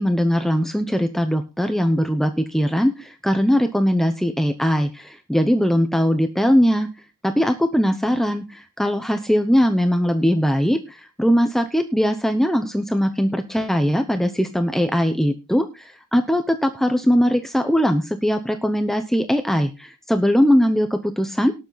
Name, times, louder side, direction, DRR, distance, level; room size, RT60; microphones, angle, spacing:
voice 1, 0.0-6.9 7.2-21.5, equal, ahead, 7 dB, 0.8 m, -20 dB
18.5 x 7.5 x 4.0 m, 0.28 s
head